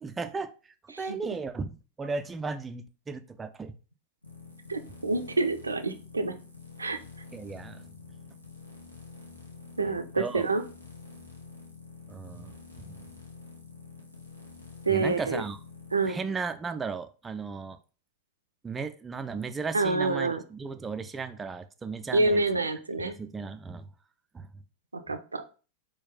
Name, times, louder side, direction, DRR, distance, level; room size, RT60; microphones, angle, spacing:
voice 1, 0.0-3.7 7.3-7.8 9.9-10.4 12.1-13.0 14.9-15.6 16.0-17.8 18.6-22.7 23.0-23.8 24.3-24.5, right 4 dB, 15° right, 8 dB, 0.3 m, -36 dB
sound 1, 4.2-16.1, left 4 dB, 85° left, 0.8 m, -48 dB
voice 2, 4.7-6.3 6.8-7.0 9.8-10.6 14.9-15.4 15.9-16.2 19.7-20.4 22.1-23.1 24.9-25.4, right 3 dB, 80° right, 8 dB, 0.4 m, -27 dB
4.2 x 2.3 x 3.9 m, 0.35 s
figure-of-eight pair, 90°, 0 cm